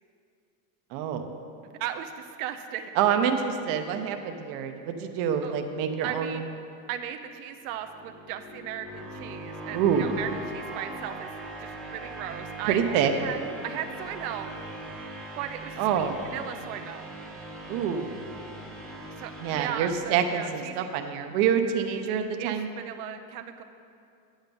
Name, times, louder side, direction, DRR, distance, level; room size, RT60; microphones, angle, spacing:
voice 1, 0.9-1.3 3.0-6.4 9.7-10.1 12.7-13.1 15.8-16.1 17.7-18.1 19.4-22.7, right 8 dB, 50° right, 5 dB, 0.8 m, -26 dB
voice 2, 1.8-2.9 5.4-5.6 6.0-6.5 6.9-11.3 11.6-13.4 13.6-14.5 15.4-17.1 19.2-20.9 21.9-23.6, right 10 dB, 85° right, 6 dB, 0.8 m, -37 dB
sound 1, 7.7-20.7, right 2 dB, ahead, 0.8 m, -41 dB
9.4 x 9.0 x 5.3 m, 2.5 s
cardioid pair, 170°, 43 cm